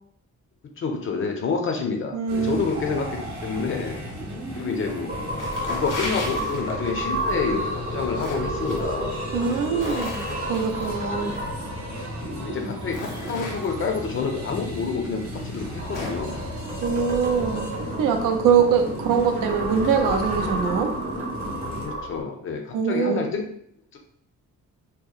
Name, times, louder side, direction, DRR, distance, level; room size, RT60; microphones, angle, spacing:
voice 1, 0.8-4.0 4.6-5.1 5.7-9.2 11.1-11.4 12.4-16.3 21.8-23.4 23.9-24.0, left 5 dB, 40° left, 2 dB, 0.4 m, -28 dB
voice 2, 2.1-2.6 9.3-11.3 16.8-17.7 18.0-20.9 22.7-23.3, right 6 dB, 85° right, 4 dB, 0.5 m, -23 dB
sound 1, 2.3-21.9, equal, 65° right, 0.8 m, -35 dB
sound 2, 2.7-13.3 15.3-22.2, equal, 25° right, 0.5 m, -32 dB
sound 3, 4.6-5.0 5.3-7.0 7.8-8.8 9.4-10.9 12.0-12.1 12.6-13.9 14.8-14.9 15.4-16.3, left 3 dB, 80° left, 0.6 m, -36 dB
2.8 x 2.0 x 2.3 m, 0.67 s
wide cardioid pair, 160°, 31 cm